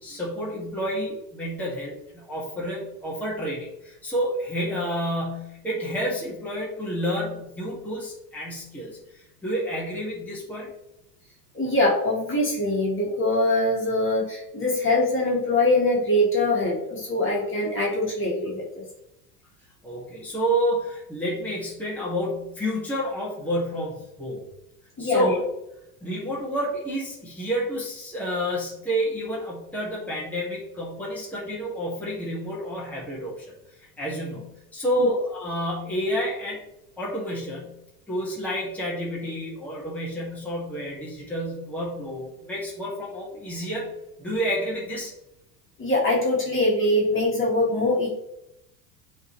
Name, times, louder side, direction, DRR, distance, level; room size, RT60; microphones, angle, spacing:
voice 1, 0.0-10.7 19.8-24.4 25.0-25.4 26.0-33.5 33.8-36.6 37.0-37.8 38.1-43.9 44.2-45.1, equal, 5° left, -7 dB, 2.2 m, -29 dB
voice 2, 11.5-18.8 25.0-25.3 35.0-35.1 45.8-48.1, left 1 dB, 25° left, -4 dB, 2.4 m, -23 dB
8.8 x 3.9 x 3.3 m, 0.86 s
hypercardioid pair, 95°, 48 cm